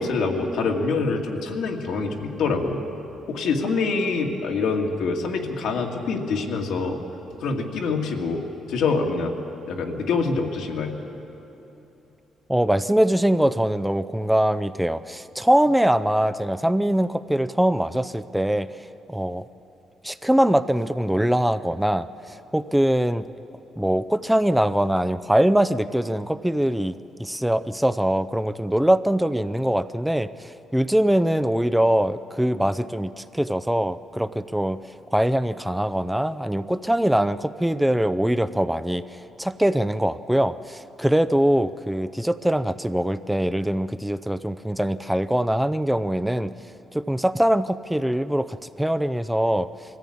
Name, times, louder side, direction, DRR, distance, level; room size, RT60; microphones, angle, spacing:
voice 1, 0.0-2.8 3.3-7.0 7.4-9.3 9.7-10.9, left 4 dB, 80° left, 1 dB, 2.1 m, -25 dB
voice 2, 12.5-18.7 19.1-19.4 20.0-22.1 22.5-23.2 23.8-34.8 35.1-39.0 39.4-46.5 46.9-49.7, right 1 dB, 5° right, 12 dB, 0.5 m, -22 dB
20.5 x 14.5 x 8.7 m, 2.9 s
cardioid pair, 90°, 0 cm